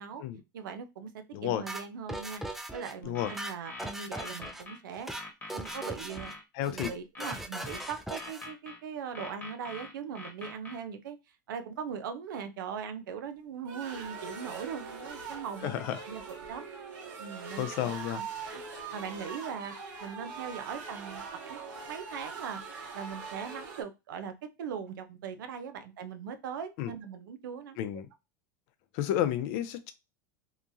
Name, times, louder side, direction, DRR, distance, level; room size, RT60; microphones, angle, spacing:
voice 1, 0.5-2.4 2.7-5.1 5.5-6.3 6.7-11.2 11.5-15.7 16.0-16.7 17.2-17.8 18.5-18.6 18.9-19.7 20.0-22.6 22.9-24.3 24.6-27.8, right 7 dB, 85° right, 9 dB, 0.5 m, -40 dB
voice 2, 1.3-1.6 3.0-3.3 6.6-6.9 15.6-16.0 17.6-18.2 26.8-26.9 27.8-28.1 28.9-29.9, left 11 dB, 60° left, 10 dB, 0.5 m, -31 dB
sound 1, 1.7-2.9 3.2-4.6 4.9-5.2 5.5-6.3 6.6-6.9 7.2-8.5, right 1 dB, ahead, 0.4 m, -39 dB
sound 2, 3.0-4.8 5.1-6.4 7.1-8.8 9.1-10.8, left 2 dB, 15° left, 1.2 m, -44 dB
sound 3, 13.7-23.8, right 5 dB, 65° right, 1.1 m, -42 dB
2.8 x 2.3 x 2.6 m, 0.24 s
supercardioid pair, 115°, 11 cm